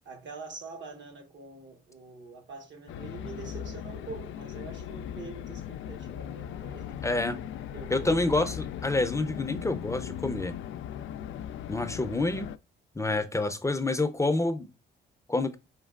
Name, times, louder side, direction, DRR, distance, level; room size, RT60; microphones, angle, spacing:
voice 1, 0.0-7.0 7.6-8.1, right 4 dB, 65° right, 1.2 m, -45 dB
sound 1, 2.9-12.6, left 10 dB, 80° left, 0.4 m, -38 dB
voice 2, 7.0-7.4 7.9-10.5 11.7-12.5 13.0-14.7 15.3-15.5, left 2 dB, 15° left, 0.5 m, -28 dB
5.3 x 3.1 x 2.3 m
cardioid pair, 90°, 20 cm